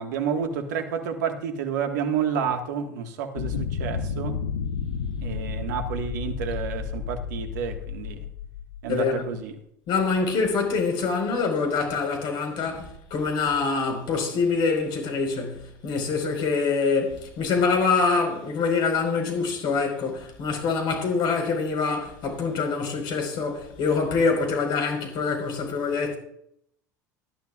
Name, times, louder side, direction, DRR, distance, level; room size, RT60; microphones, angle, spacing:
voice 1, 0.0-4.3 5.2-8.3 8.8-9.5, right 7 dB, 70° right, 1.7 m, -30 dB
sound 1, 3.3-9.1, left 6 dB, 75° left, 1.0 m, -31 dB
voice 2, 8.9-9.2 9.9-26.2, left 4 dB, 55° left, 4.7 m, -25 dB
19.0 x 12.0 x 2.5 m
hypercardioid pair, 75°, 10 cm